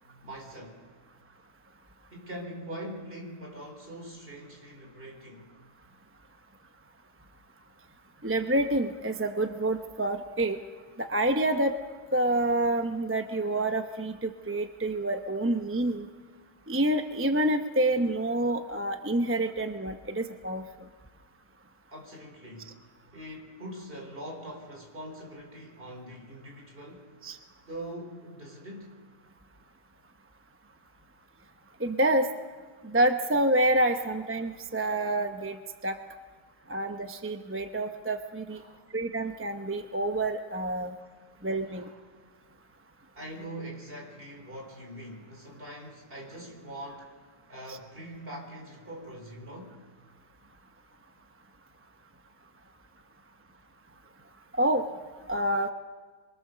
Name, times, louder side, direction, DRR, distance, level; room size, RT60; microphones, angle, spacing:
voice 1, 0.2-0.8 2.1-5.5 21.9-22.7 23.1-27.2 27.7-28.9 36.5-36.7 38.5-38.9 40.8-40.9 41.7-42.0 43.1-47.2 47.5-49.8, right 1 dB, 35° right, 4.5 m, -43 dB
voice 2, 8.2-10.6 11.0-11.8 12.1-16.1 16.7-20.6 27.2-27.4 31.8-32.3 32.8-35.6 35.8-36.0 36.7-38.6 38.9-40.9 41.4-41.9 47.7-47.8 54.6-54.9 55.3-55.7, right 1 dB, 15° right, 0.6 m, -27 dB
26.5 x 23.5 x 6.7 m
omnidirectional pair, 1.7 m